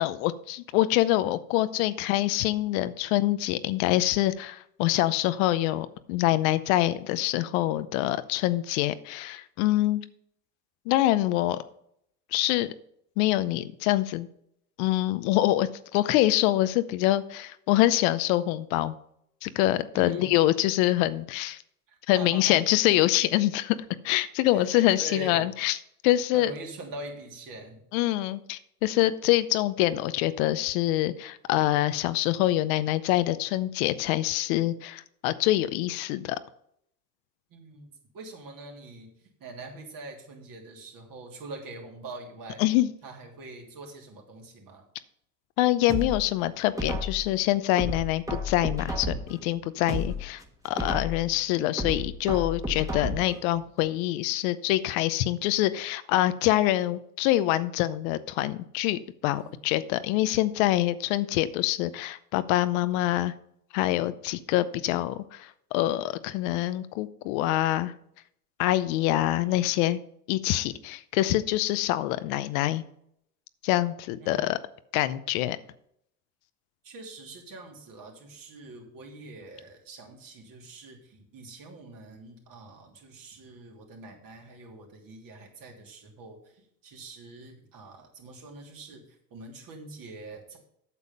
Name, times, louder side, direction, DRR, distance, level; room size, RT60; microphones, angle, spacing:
voice 1, 0.0-10.0 10.9-11.6 12.3-12.7 13.2-14.3 14.8-18.9 19.4-21.6 22.1-23.8 24.0-26.5 27.9-36.4 42.6-42.9 45.6-63.3 63.7-67.9 68.6-70.0 70.3-72.8 73.6-74.6 74.9-75.6, left 15 dB, 75° left, 14 dB, 0.7 m, -25 dB
voice 2, 19.9-20.4 21.9-22.6 24.5-25.5 26.3-27.8 37.5-42.6 43.0-44.9 50.2-50.3 59.2-59.5 74.2-74.5 76.8-90.6, right 2 dB, 50° right, 1 dB, 3.0 m, -44 dB
sound 1, 45.9-47.3 47.8-49.4 49.8-51.3 51.8-53.4 53.8-53.9, left 1 dB, 10° right, 1.5 m, -32 dB
8.4 x 7.1 x 5.4 m, 0.72 s
supercardioid pair, 90°, 43 cm